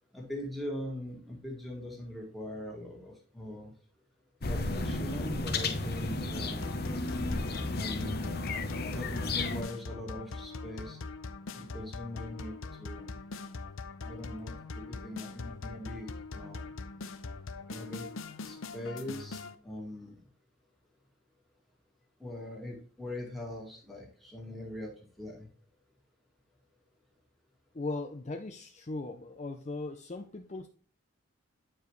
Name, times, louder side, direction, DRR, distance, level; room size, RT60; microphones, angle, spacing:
voice 1, 0.1-3.7 4.4-6.6 7.7-8.4 8.9-11.0 11.5-12.5 12.8-13.2 14.0-16.1 16.3-16.7 17.7-18.1 18.4-19.4 19.6-20.1 22.2-24.9 25.2-25.5, left 1 dB, ahead, -2 dB, 2.0 m, -41 dB
sound 1, 4.4-9.6, left 2 dB, 50° left, 0.9 m, -33 dB
sound 2, 6.6-19.5, left 3 dB, 80° left, 0.7 m, -42 dB
voice 2, 27.7-30.7, left 2 dB, 35° left, 4 dB, 0.5 m, -38 dB
9.1 x 4.9 x 3.1 m, 0.42 s
head